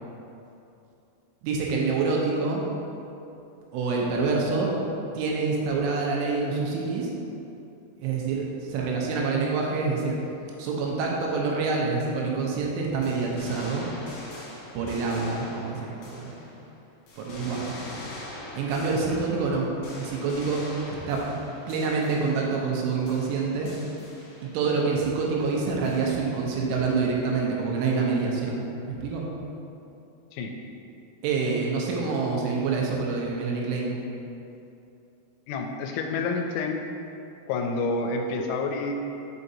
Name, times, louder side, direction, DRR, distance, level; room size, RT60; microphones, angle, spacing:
voice 1, 1.4-2.7 3.7-4.7 5.1-7.1 8.0-10.2 10.6-13.9 14.7-16.4 17.2-17.7 18.6-19.7 20.0-21.3 21.7-23.7 24.5-29.2 31.2-34.0, right 4 dB, 80° right, -2 dB, 3.1 m, -26 dB
sound 1, 13.0-16.7 17.1-22.8 23.1-24.7 25.8-26.6, left 1 dB, 65° left, 2.6 m, -43 dB
voice 2, 35.5-36.8 37.5-38.9, left 3 dB, 85° left, 3 dB, 3.0 m, -28 dB
6.2 x 5.7 x 2.7 m, 2.8 s
omnidirectional pair, 5.7 m